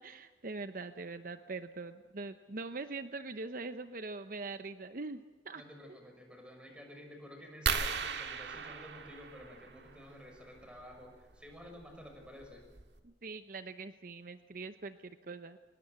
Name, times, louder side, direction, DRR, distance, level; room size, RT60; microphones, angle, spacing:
voice 1, 0.0-5.6 13.0-15.6, right 3 dB, 50° right, 10 dB, 0.8 m, -43 dB
voice 2, 5.5-12.6, left 1 dB, 5° right, 3 dB, 6.1 m, -51 dB
sound 1, 7.7-10.0 11.6-11.8 12.4-12.5 12.8-13.0, right 5 dB, 85° right, 1.9 m, -36 dB
24.5 x 20.5 x 8.1 m, 1.3 s
head